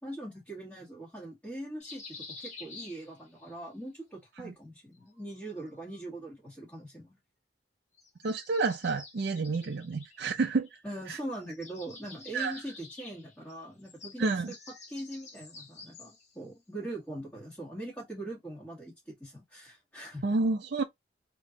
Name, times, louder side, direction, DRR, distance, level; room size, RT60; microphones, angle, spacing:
voice 1, 0.0-2.0 2.4-7.2 10.8-14.5 14.9-20.2, right 1 dB, 10° left, 1.6 m, -42 dB
sound 1, 1.8-3.5 4.9-6.0 7.9-10.9 11.2-16.4, left 3 dB, 40° left, 1.3 m, -50 dB
voice 2, 8.2-10.7 11.1-11.2 12.3-12.5 14.2-14.5 20.2-20.8, right 3 dB, 60° right, 0.5 m, -29 dB
3.6 x 2.9 x 3.7 m
head